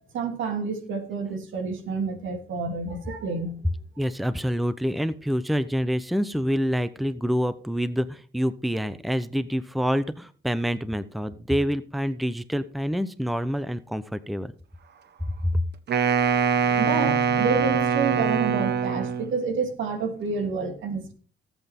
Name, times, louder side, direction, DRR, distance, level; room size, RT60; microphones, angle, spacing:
voice 1, 0.1-3.5 16.3-21.1, right 4 dB, 80° right, 4 dB, 3.1 m, -29 dB
voice 2, 4.0-14.5 15.5-15.6, equal, ahead, 14 dB, 0.8 m, -27 dB
Wind instrument woodwind instrument, 15.9-19.4, right 6 dB, 55° right, 1.3 m, -23 dB
18.0 x 8.2 x 3.7 m, 0.40 s
cardioid pair, 90°, 20 cm